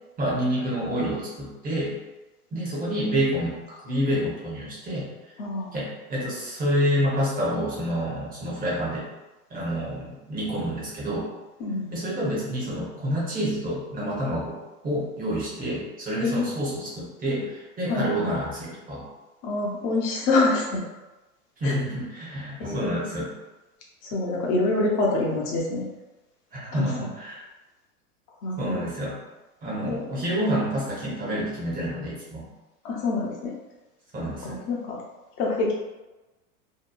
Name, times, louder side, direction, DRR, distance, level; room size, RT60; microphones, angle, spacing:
voice 1, 0.2-2.0 2.5-5.1 5.7-9.1 9.5-11.3 11.9-14.6 14.8-19.1 21.6-23.3 26.5-27.4 28.6-29.2 29.6-32.5 34.1-34.6, equal, 20° right, -5 dB, 0.8 m, -28 dB
voice 2, 5.4-5.7 11.6-11.9 16.2-16.5 17.9-18.1 19.4-20.8 21.6-21.8 22.6-23.0 24.0-25.8 26.7-26.9 28.4-28.8 29.9-30.0 32.8-33.5 34.4-35.0 35.4-35.7, left 2 dB, 40° left, -2 dB, 0.7 m, -26 dB
2.8 x 2.2 x 2.2 m, 1.1 s
hypercardioid pair, 110°, 46 cm